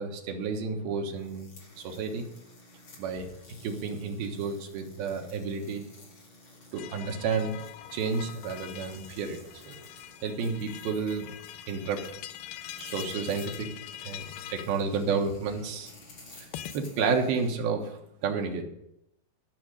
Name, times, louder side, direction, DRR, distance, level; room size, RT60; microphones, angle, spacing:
voice 1, 0.0-1.5 1.8-2.3 3.0-3.3 3.6-5.8 6.7-7.6 7.9-9.4 9.7-9.9 10.2-11.3 11.7-12.1 12.8-13.7 14.0-15.9 16.3-16.5 16.7-18.6, right 5 dB, 80° right, 2 dB, 3.1 m, -31 dB
sound 1, 1.1-17.5, left 2 dB, 40° left, 2.7 m, -53 dB
sound 2, 6.7-16.8, left 11 dB, 90° left, 1.9 m, -44 dB
12.5 x 6.4 x 6.3 m, 0.79 s
omnidirectional pair, 4.4 m